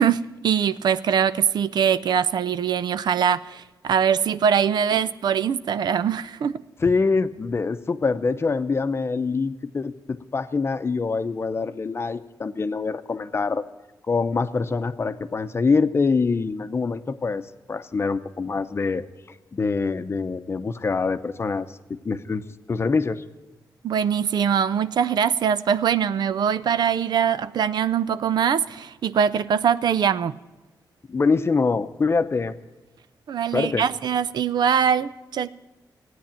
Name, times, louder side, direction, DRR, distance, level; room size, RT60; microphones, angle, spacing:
voice 1, 0.0-6.6 23.8-30.4 33.3-35.5, right 8 dB, 75° right, 15 dB, 0.5 m, -22 dB
voice 2, 6.8-13.6 14.1-23.2 31.1-32.5 33.5-33.9, left 4 dB, 35° left, 10 dB, 0.7 m, -25 dB
16.0 x 9.5 x 8.8 m, 1.1 s
wide cardioid pair, 115°, 7 cm